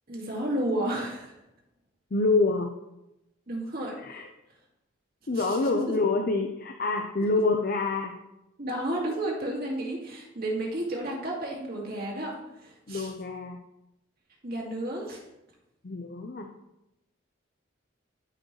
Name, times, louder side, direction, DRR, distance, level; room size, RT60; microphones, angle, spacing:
voice 1, 0.1-1.3 3.5-4.2 5.3-5.8 8.6-13.1 14.4-15.2, right 1 dB, 50° right, -2 dB, 2.1 m, -32 dB
voice 2, 2.1-2.7 4.0-4.3 5.3-8.1 12.9-13.6 15.8-16.5, left 3 dB, 45° left, 4 dB, 0.5 m, -26 dB
12.5 x 5.2 x 3.1 m, 0.90 s
head